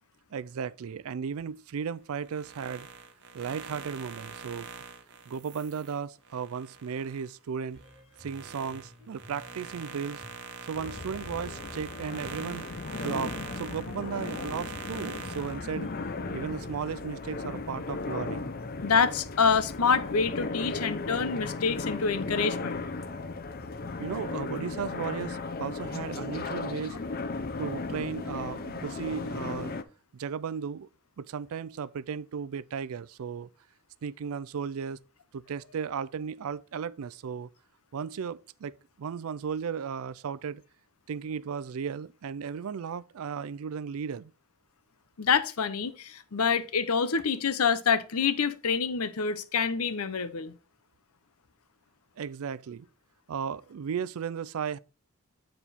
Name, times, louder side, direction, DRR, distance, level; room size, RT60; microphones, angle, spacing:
voice 1, 0.3-2.9 3.3-4.7 5.3-7.8 8.2-10.2 10.7-12.7 13.0-15.9 16.3-18.5 24.0-27.0 27.6-29.8 30.1-30.9 31.2-33.5 34.0-35.0 35.3-37.5 37.9-40.6 41.1-44.3 52.2-52.9 53.3-54.8, right 6 dB, 75° right, 0.4 m, -35 dB
sound 1, 2.2-7.3 7.7-15.6, right 5 dB, 55° right, 0.9 m, -43 dB
sound 2, 7.7-23.7, equal, ahead, 5.0 m, -52 dB
sound 3, 10.7-29.8, left 3 dB, 40° left, 0.6 m, -36 dB
voice 2, 18.8-22.8 45.2-50.5, left 5 dB, 80° left, 0.7 m, -27 dB
9.0 x 4.4 x 4.1 m
head